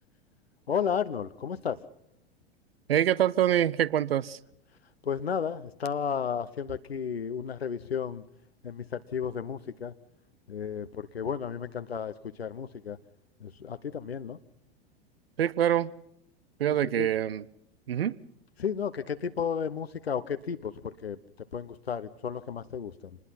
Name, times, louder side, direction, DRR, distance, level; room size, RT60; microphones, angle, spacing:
voice 1, 0.7-1.8 5.0-8.2 8.6-9.9 10.5-13.0 13.4-14.4 17.0-17.1 18.6-21.2 21.5-23.2, left 7 dB, 85° left, 1.0 m, -33 dB
voice 2, 2.9-4.4 15.4-15.9 16.6-17.4 17.9-18.2, right 10 dB, 75° right, 0.9 m, -25 dB
26.0 x 20.5 x 5.8 m
figure-of-eight pair, 90°, 30 cm